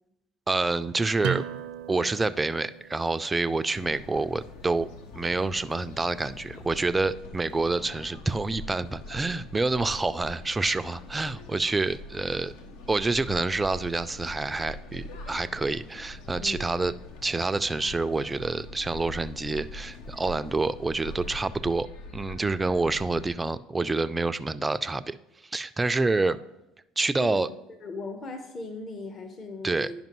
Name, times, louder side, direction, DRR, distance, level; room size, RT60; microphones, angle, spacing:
voice 1, 0.5-1.4 1.9-4.9 5.1-12.5 12.9-16.9 17.2-21.9 22.1-25.2 25.5-26.4 27.0-27.5 29.6-29.9, right 3 dB, 20° right, 13 dB, 0.4 m, -27 dB
sound 1, 1.2-6.6, right 10 dB, 70° right, 0.5 m, -39 dB
sound 2, 3.7-23.3, left 2 dB, 70° left, 0.7 m, -43 dB
voice 2, 27.8-29.9, left 3 dB, 45° left, 6 dB, 0.9 m, -38 dB
10.5 x 5.1 x 3.0 m, 0.93 s
hypercardioid pair, 65°, 0 cm